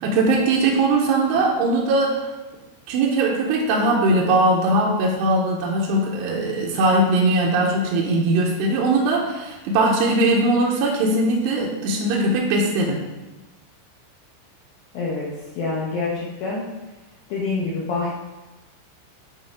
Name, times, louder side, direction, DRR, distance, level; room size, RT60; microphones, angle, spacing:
voice 1, 0.0-2.3 2.9-13.0, right 2 dB, 75° right, -3 dB, 2.7 m, -20 dB
voice 2, 14.9-16.7 17.3-18.1, left 3 dB, 80° left, -5 dB, 2.0 m, -26 dB
10.5 x 4.6 x 3.6 m, 1.1 s
omnidirectional pair, 5.6 m